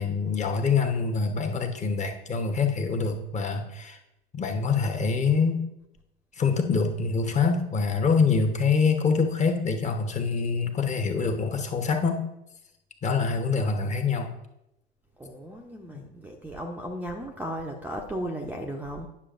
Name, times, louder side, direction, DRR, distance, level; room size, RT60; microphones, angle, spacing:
voice 1, 0.0-4.0 4.3-5.6 6.4-12.2 13.0-14.3, left 5 dB, 25° left, 4 dB, 1.1 m, -25 dB
voice 2, 15.2-19.1, equal, 5° right, 1 dB, 0.7 m, -35 dB
9.8 x 6.4 x 2.5 m, 0.87 s
hypercardioid pair, 90°, 31 cm